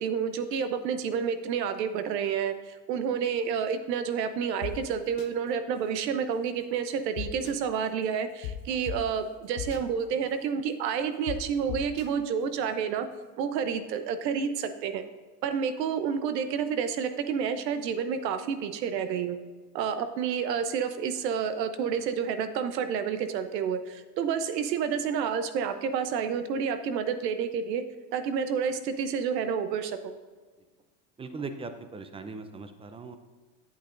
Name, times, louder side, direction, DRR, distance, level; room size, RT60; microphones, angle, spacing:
voice 1, 0.0-13.1 13.4-15.0 15.4-19.4 19.7-27.8 28.1-30.1, right 7 dB, 85° right, 10 dB, 0.9 m, -29 dB
sound 1, 4.6-4.7 5.2-5.3 7.2-7.5 8.4-8.5 8.9-9.0 9.6-9.8 11.3-11.4 11.7-12.0, left 11 dB, 60° left, 0.9 m, -35 dB
voice 2, 31.2-33.2, right 4 dB, 10° right, 9 dB, 0.5 m, -39 dB
8.8 x 8.3 x 2.6 m, 1.3 s
supercardioid pair, 105°, 48 cm